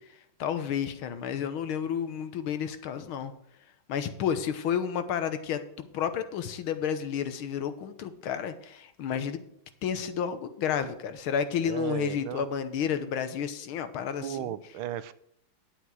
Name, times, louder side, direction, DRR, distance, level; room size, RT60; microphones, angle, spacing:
voice 1, 0.4-3.3 3.9-9.4 9.8-14.5, left 8 dB, 85° left, 10 dB, 1.9 m, -31 dB
voice 2, 11.6-12.5 14.2-15.1, right 11 dB, 80° right, 14 dB, 1.5 m, -35 dB
10.5 x 8.6 x 4.7 m, 0.74 s
omnidirectional pair, 2.3 m